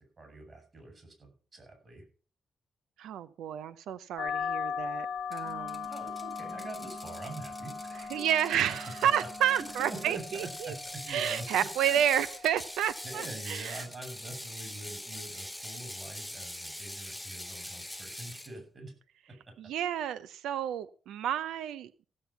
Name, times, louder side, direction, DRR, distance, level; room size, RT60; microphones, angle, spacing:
voice 1, 0.2-2.0 5.9-8.2 8.7-12.0 13.0-18.9 19.3-19.5, right 2 dB, 35° right, 5 dB, 6.8 m, -45 dB
voice 2, 3.0-5.9 8.1-10.7 11.1-13.9 19.6-21.9, right 10 dB, 90° right, 15 dB, 0.6 m, -30 dB
sound 1, 4.2-13.2, left 7 dB, 55° left, 1.0 m, -40 dB
Ratchet pawl, 5.3-18.5, left 1 dB, 5° left, 0.8 m, -43 dB
Wind instrument woodwind instrument, 5.4-10.2, right 3 dB, 70° right, 5.3 m, -48 dB
15.5 x 7.4 x 5.7 m, 0.40 s
cardioid pair, 95°, 0 cm